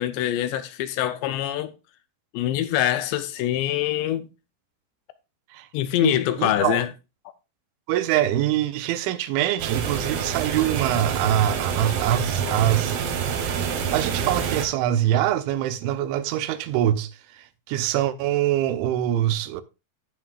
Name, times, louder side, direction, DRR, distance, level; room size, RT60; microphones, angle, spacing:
voice 1, 0.0-1.7 2.3-4.3 5.7-6.9 12.5-12.6, left 12 dB, 80° left, 2.7 m, -24 dB
voice 2, 6.0-6.8 7.9-13.0 13.9-17.1 17.7-19.6, right 12 dB, 90° right, 3.2 m, -24 dB
sound 1, 9.6-14.7, right 7 dB, 70° right, 2.1 m, -27 dB
16.5 x 5.8 x 2.4 m
omnidirectional pair, 5.3 m